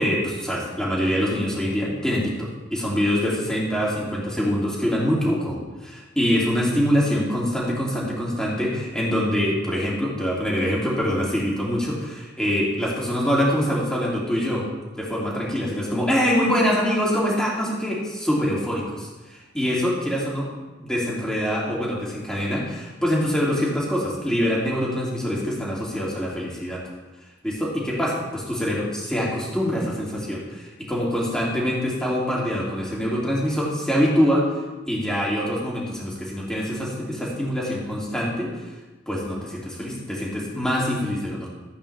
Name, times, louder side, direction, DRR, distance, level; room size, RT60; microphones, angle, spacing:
voice 1, 0.0-14.6 14.9-20.5 20.8-26.8 27.4-34.4 34.9-38.5 39.1-41.5, equal, 5° left, -5 dB, 2.6 m, -24 dB
14.5 x 8.6 x 3.3 m, 1.2 s
head